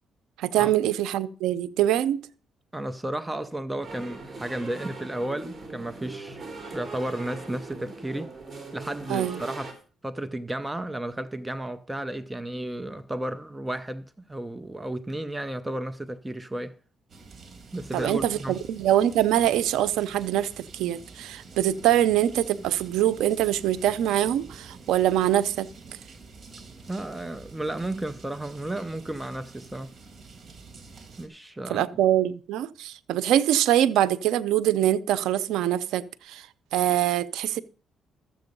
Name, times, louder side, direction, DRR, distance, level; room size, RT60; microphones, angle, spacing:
voice 1, 0.4-2.2 9.1-9.4 17.9-25.7 31.7-36.5 36.7-37.6, right 12 dB, 90° right, 0.6 m, -24 dB
voice 2, 2.7-6.5 6.7-8.3 8.7-9.8 10.0-16.8 17.7-18.6 26.9-29.9 31.2-32.0, right 1 dB, 10° right, 0.6 m, -33 dB
sound 1, 3.8-9.7, right 3 dB, 30° right, 3.6 m, -40 dB
sound 2, 17.1-31.3, right 4 dB, 45° right, 2.6 m, -47 dB
13.0 x 7.7 x 5.4 m
cardioid pair, 90°, 0 cm